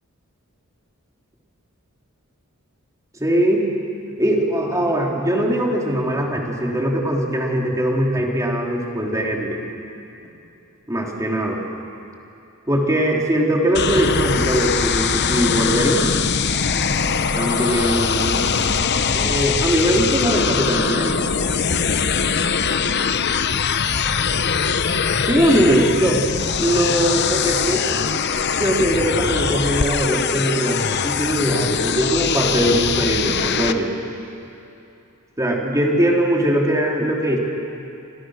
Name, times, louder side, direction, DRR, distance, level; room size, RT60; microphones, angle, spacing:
voice 1, 3.2-3.7 4.2-9.7 10.9-11.6 12.7-16.0 17.3-18.4 19.1-21.3 25.2-26.2 26.6-27.9 28.5-33.9 35.4-37.4, right 1 dB, 15° right, -1 dB, 3.2 m, -20 dB
sound 1, 13.7-33.7, left 6 dB, 50° left, 0.9 m, -22 dB
29.5 x 25.5 x 6.4 m, 2.7 s
head